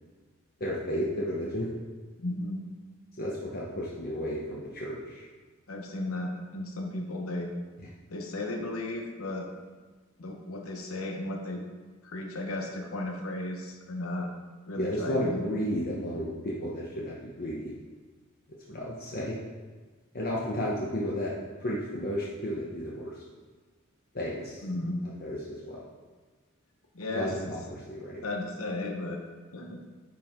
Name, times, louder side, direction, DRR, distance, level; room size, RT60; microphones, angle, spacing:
voice 1, 0.6-1.7 3.2-5.3 14.8-17.7 18.7-19.4 20.1-21.3 21.6-23.1 24.1-24.6 25.2-25.4 25.7-25.8 27.1-28.2, equal, 45° left, -5 dB, 1.0 m, -32 dB
voice 2, 2.2-2.6 5.7-7.5 8.1-9.5 10.2-11.6 12.0-14.3 14.7-15.4 24.6-25.0 26.9-27.5 28.2-29.2 29.5-29.8, left 2 dB, 90° left, 2 dB, 1.1 m, -34 dB
9.8 x 4.6 x 3.7 m, 1.4 s
head